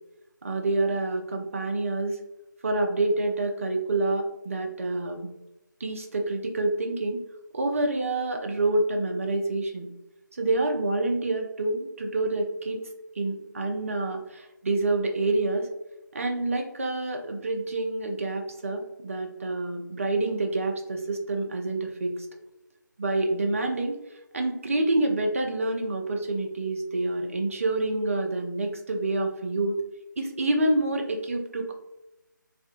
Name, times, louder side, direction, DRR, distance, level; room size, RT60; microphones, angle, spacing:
voice 1, 0.4-2.2 2.6-5.3 5.8-7.2 7.5-9.9 10.3-12.8 13.2-15.7 16.1-22.1 23.0-24.0 24.3-29.8 30.2-31.7, right 2 dB, 40° right, 3 dB, 0.4 m, -27 dB
2.6 x 2.5 x 2.4 m, 0.95 s
figure-of-eight pair, 160°, 11 cm